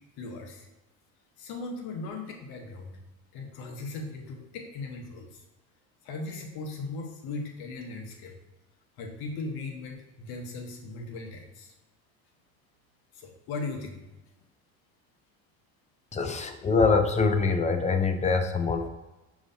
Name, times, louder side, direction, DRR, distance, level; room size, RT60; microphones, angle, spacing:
voice 1, 0.2-0.7 1.4-3.0 3.3-5.4 6.0-8.3 9.0-11.7 13.1-14.0, left 3 dB, 70° left, 3 dB, 1.1 m, -38 dB
voice 2, 16.1-18.9, left 4 dB, 20° left, 6 dB, 0.4 m, -24 dB
6.4 x 3.1 x 2.7 m, 1.0 s
supercardioid pair, 95°, 39 cm